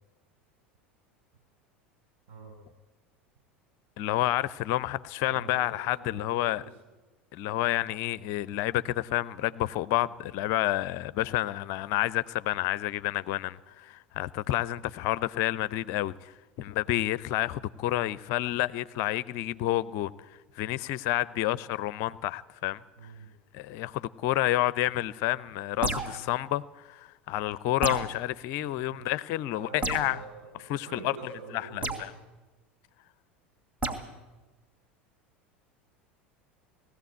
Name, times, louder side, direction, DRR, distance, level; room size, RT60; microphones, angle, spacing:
voice 1, 4.0-6.6 7.3-16.3 16.6-20.1 20.6-22.8 23.5-30.2 30.7-31.1 31.5-32.1, left 15 dB, 50° left, 0.5 m, -29 dB
voice 2, 5.2-6.7 23.0-23.3 28.6-29.0 29.5-30.5 30.8-32.0, right 4 dB, 60° right, 7.9 m, -46 dB
sound 1, 25.8-26.3 27.8-28.2 29.8-30.1 31.8-32.1 33.8-34.0, right 2 dB, 25° right, 2.6 m, -31 dB
19.0 x 14.5 x 9.3 m
figure-of-eight pair, 75°, 6 cm